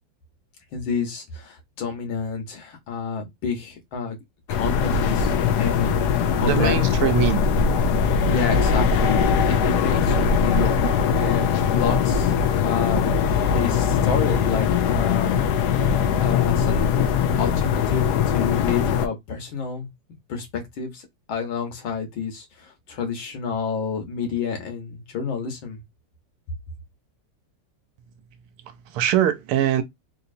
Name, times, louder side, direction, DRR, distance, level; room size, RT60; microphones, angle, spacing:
voice 1, 0.7-4.2 4.5-7.1 8.3-12.3 12.6-15.4 16.2-16.9 17.4-19.9 20.3-25.8, left 6 dB, 65° left, 1.9 m, -29 dB
sound 1, 4.5-19.1, left 6 dB, 85° left, 0.9 m, -21 dB
voice 2, 6.4-7.4 28.6-29.8, right 10 dB, 85° right, 1.5 m, -22 dB
4.0 x 2.8 x 2.6 m
omnidirectional pair, 2.4 m